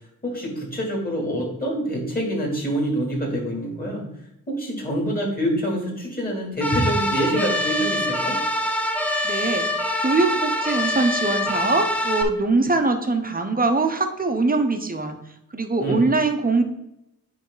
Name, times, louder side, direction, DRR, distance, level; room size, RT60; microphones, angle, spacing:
voice 1, 0.2-4.0 4.6-8.3 15.8-16.0, equal, 25° left, -2 dB, 2.8 m, -26 dB
sound 1, 6.6-12.2, left 1 dB, 5° left, 0.7 m, -24 dB
voice 2, 9.2-15.2 15.5-16.6, right 3 dB, 25° right, 6 dB, 0.9 m, -22 dB
9.7 x 3.6 x 3.9 m, 0.85 s
wide cardioid pair, 135°, 34 cm